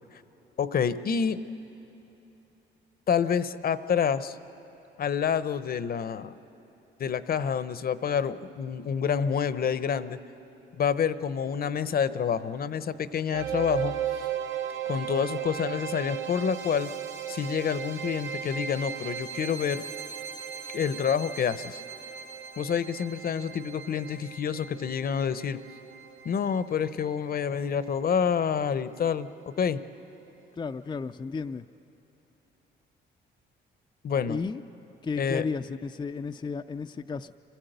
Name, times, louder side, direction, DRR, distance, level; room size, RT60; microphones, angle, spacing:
voice 1, 0.6-1.4 3.1-4.4 5.0-6.3 7.0-10.2 10.8-13.9 14.9-16.9 17.3-19.8 20.7-21.8 22.6-25.6 26.2-29.8 34.0-34.4 35.2-35.4, left 7 dB, 50° left, 14 dB, 0.7 m, -28 dB
sound 1, 13.3-28.3, right 8 dB, 80° right, 1.4 m, -37 dB
voice 2, 30.6-31.7 34.3-34.6 35.0-37.3, left 4 dB, 20° left, 6 dB, 0.4 m, -33 dB
26.5 x 16.0 x 8.0 m, 3.0 s
cardioid pair, 90°, 20 cm